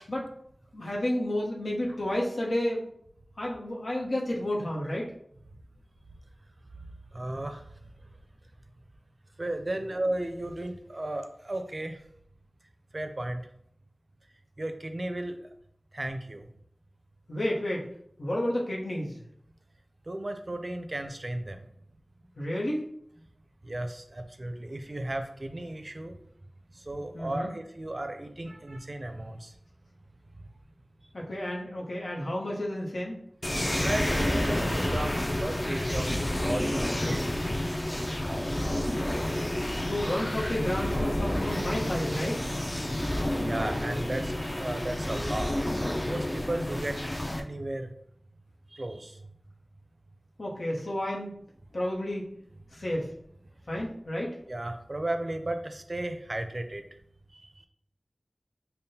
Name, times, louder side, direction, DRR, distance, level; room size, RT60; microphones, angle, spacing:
voice 1, 0.7-2.9 3.4-5.1 17.3-17.8 18.2-19.2 22.4-22.8 27.1-27.5 31.1-33.2 39.8-42.4 50.4-51.3 51.7-52.2 52.7-53.1 53.7-54.4, left 1 dB, 85° left, -3 dB, 0.8 m, -31 dB
voice 2, 7.1-7.6 9.4-12.0 12.9-13.4 14.6-15.4 15.9-16.5 20.1-21.6 23.6-26.1 26.8-29.5 33.8-36.1 36.4-37.2 37.6-38.6 43.4-45.5 46.0-47.0 47.4-47.9 48.7-49.2 54.5-56.8 57.3-57.7, right 1 dB, 45° right, 6 dB, 0.4 m, -35 dB
sound 1, 33.4-47.4, left 1 dB, 25° left, 0.4 m, -29 dB
5.4 x 2.1 x 2.7 m, 0.70 s
wide cardioid pair, 65°, 0 cm